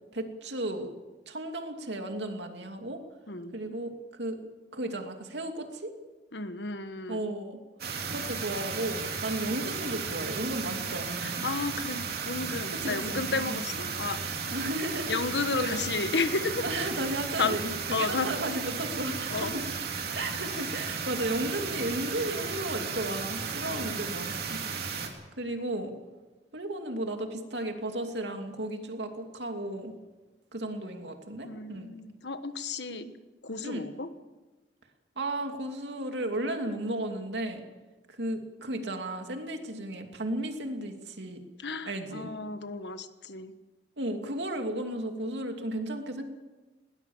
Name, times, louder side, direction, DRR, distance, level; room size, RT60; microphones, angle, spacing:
voice 1, 0.1-0.9 1.3-3.0 3.5-4.4 4.7-5.9 7.1-11.5 12.8-13.6 14.5-15.3 15.6-15.8 16.6-19.6 20.0-24.9 25.4-25.9 26.5-29.9 30.5-31.9 32.9-33.1 33.6-33.9 35.2-37.6 38.1-41.4 41.9-42.3 44.0-46.2, right 1 dB, 75° right, 4 dB, 2.7 m, -34 dB
voice 2, 6.3-7.2 11.2-14.2 15.1-16.7 17.4-17.6 17.9-18.3 19.3-19.6 23.6-24.0 31.4-33.1 33.4-34.1 41.6-43.5, left 3 dB, 75° left, 10 dB, 1.4 m, -32 dB
sound 1, 7.8-25.1, right 5 dB, 60° right, 3.2 m, -34 dB
20.0 x 19.5 x 7.2 m, 1.2 s
head